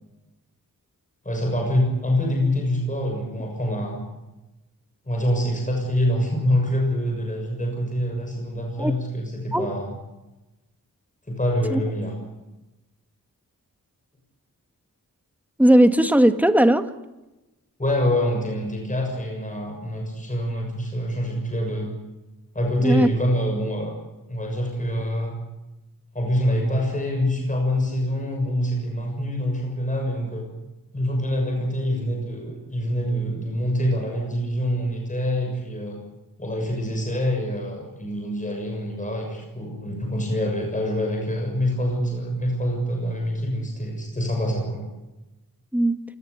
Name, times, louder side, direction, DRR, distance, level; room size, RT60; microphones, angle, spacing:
voice 1, 1.2-4.1 5.1-9.9 11.3-12.1 17.8-21.9 22.5-23.9 24.3-25.4 26.1-30.5 30.9-36.0 36.4-44.8, equal, 20° left, 1 dB, 6.8 m, -25 dB
voice 2, 15.6-16.9 22.8-23.1 45.7-46.0, right 1 dB, 5° right, 8 dB, 1.7 m, -17 dB
28.0 x 18.5 x 8.3 m, 1.0 s
wide cardioid pair, 95°, 34 cm